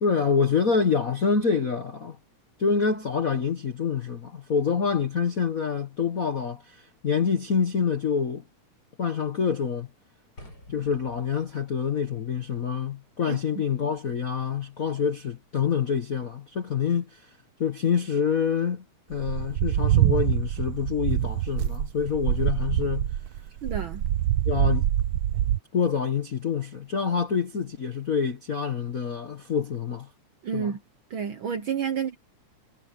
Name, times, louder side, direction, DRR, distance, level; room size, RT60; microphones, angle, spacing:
voice 1, 0.0-2.2 2.6-8.4 9.0-9.9 10.7-17.3 17.6-18.8 19.1-23.2 24.4-24.9 25.7-30.1 30.5-30.7, left 6 dB, 55° left, 0.9 m, -26 dB
sound 1, 10.4-16.5, left 1 dB, 30° left, 6.8 m, -55 dB
sound 2, 19.1-25.6, right 13 dB, 85° right, 1.1 m, -25 dB
voice 2, 23.6-24.0 30.4-30.8 31.1-32.2, right 7 dB, 65° right, 1.3 m, -30 dB
omnidirectional pair, 3.3 m